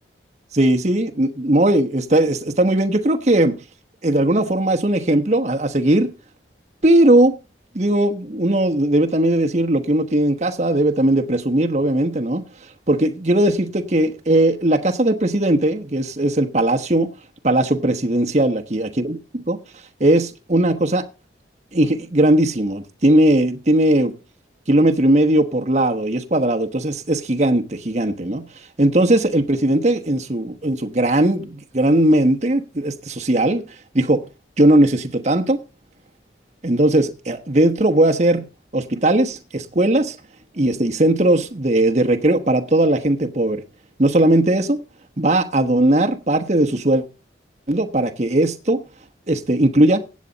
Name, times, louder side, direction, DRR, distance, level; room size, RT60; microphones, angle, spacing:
voice 1, 0.5-3.6 4.0-6.1 6.8-7.3 7.7-12.4 12.9-17.1 17.4-19.6 20.0-21.1 21.7-24.1 24.7-28.5 28.8-33.6 33.9-34.2 34.6-35.6 36.6-38.4 38.7-40.2 40.6-43.6 44.0-44.8 45.2-47.0 47.7-48.8 49.3-50.0, right 1 dB, 40° right, 1.1 m, -18 dB
16.0 x 8.5 x 4.0 m
head